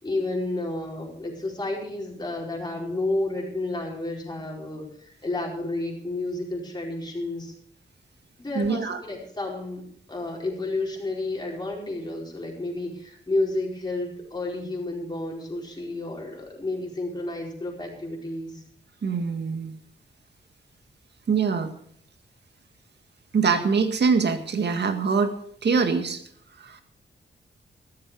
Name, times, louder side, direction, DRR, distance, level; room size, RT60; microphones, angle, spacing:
voice 1, 0.0-7.5 8.4-9.8 10.1-18.6, left 2 dB, 20° left, -2 dB, 4.7 m, -31 dB
voice 2, 8.5-9.0 19.0-19.8 21.3-21.7 23.3-25.3 25.6-26.2 26.6-26.8, right 5 dB, 60° right, 7 dB, 1.9 m, -23 dB
14.5 x 13.5 x 4.8 m, 0.64 s
wide cardioid pair, 145°, 19 cm